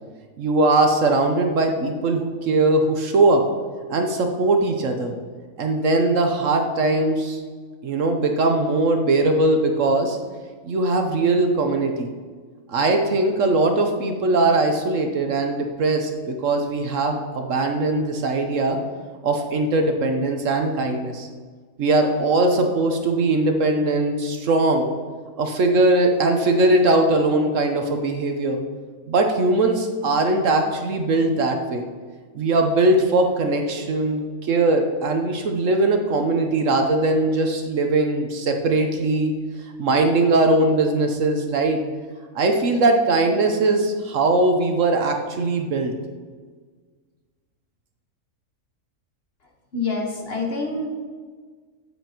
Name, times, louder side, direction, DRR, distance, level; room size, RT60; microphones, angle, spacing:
voice 1, 0.4-3.4 3.9-5.1 5.6-7.4 7.8-10.2 10.6-12.1 12.7-18.8 19.2-21.3 21.8-24.9 25.4-28.6 29.1-31.9 32.3-39.3 39.8-41.8 42.3-45.9, right 2 dB, 60° right, 4 dB, 1.1 m, -20 dB
voice 2, 49.7-50.9, left 3 dB, 45° left, 0 dB, 1.3 m, -26 dB
8.9 x 8.3 x 2.9 m, 1.5 s
omnidirectional pair, 1.6 m